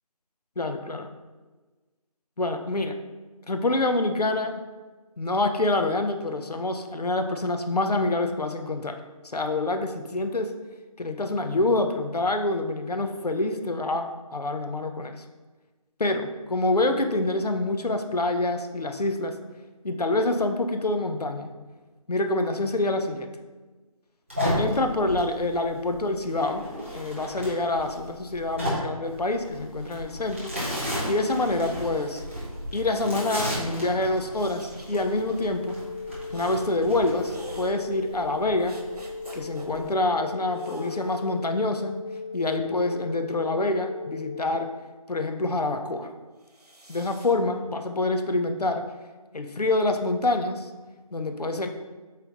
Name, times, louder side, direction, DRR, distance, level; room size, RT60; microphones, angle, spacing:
voice 1, 0.6-1.1 2.4-3.0 3.5-4.6 5.2-9.0 9.3-10.5 11.0-15.1 16.0-19.3 19.8-21.5 22.1-23.4 24.6-26.6 26.9-30.6 31.1-32.2 32.7-35.8 36.3-38.8 39.3-42.0 42.3-44.7 45.1-46.1 46.9-48.9 49.3-50.7 51.1-51.7, left 2 dB, 85° left, 6 dB, 0.9 m, -26 dB
sound 1, 24.3-39.9, equal, 20° right, 1.1 m, -34 dB
sound 2, 30.9-33.0 34.3-35.4 36.3-36.7 37.3-37.7 38.6-39.7 40.5-41.4 42.2-43.3 46.4-47.3, right 1 dB, 85° right, 1.3 m, -46 dB
sound 3, 35.0-44.5, left 4 dB, 40° left, 0.7 m, -37 dB
8.2 x 3.5 x 3.9 m, 1.3 s
figure-of-eight pair, 180°, 20 cm